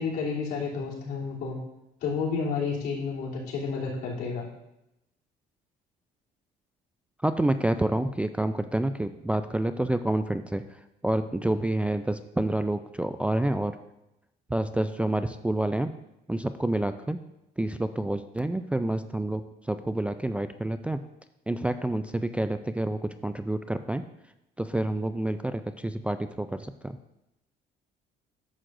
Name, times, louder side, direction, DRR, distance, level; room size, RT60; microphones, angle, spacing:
voice 1, 0.0-1.6 2.0-4.4, left 5 dB, 75° left, -6 dB, 3.1 m, -30 dB
voice 2, 7.2-13.8 14.5-15.9 16.3-17.2 17.6-21.0 21.5-24.0 24.6-27.0, right 1 dB, 5° right, 9 dB, 0.3 m, -28 dB
11.0 x 7.3 x 2.6 m, 0.87 s
cardioid pair, 110°, 17 cm